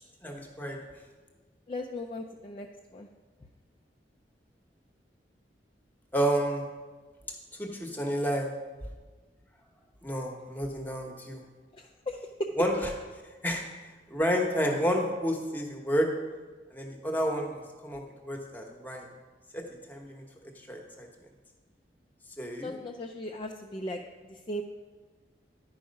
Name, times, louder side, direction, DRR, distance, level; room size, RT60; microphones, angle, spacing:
voice 1, 0.2-0.8 6.1-6.7 7.5-8.5 10.0-11.4 12.6-12.7 13.4-13.6 14.1-16.1 16.7-19.1 19.5-19.6 19.9-21.1 22.4-22.8, equal, 10° left, 2 dB, 0.9 m, -30 dB
voice 2, 1.7-2.7 2.9-3.1 11.7-12.5 22.6-24.6, left 1 dB, 30° left, 1 dB, 0.4 m, -37 dB
10.5 x 4.8 x 5.2 m, 1.4 s
head